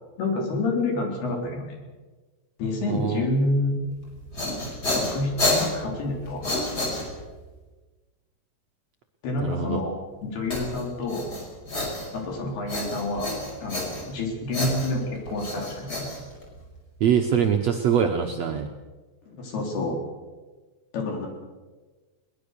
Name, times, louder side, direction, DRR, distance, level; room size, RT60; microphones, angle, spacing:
voice 1, 0.2-1.8 2.6-3.8 4.9-6.7 9.2-10.0 10.2-11.3 12.1-16.1 19.3-20.0 20.9-21.3, left 2 dB, 80° left, 1 dB, 5.9 m, -28 dB
voice 2, 2.9-3.3 9.4-9.8 17.0-18.7, right 8 dB, 70° right, 3 dB, 1.7 m, -23 dB
sound 1, 4.1-7.5 10.5-12.3 12.7-14.2 14.5-16.8, left 2 dB, 25° left, 5.6 m, -29 dB
22.0 x 20.0 x 6.8 m, 1.3 s
omnidirectional pair, 4.5 m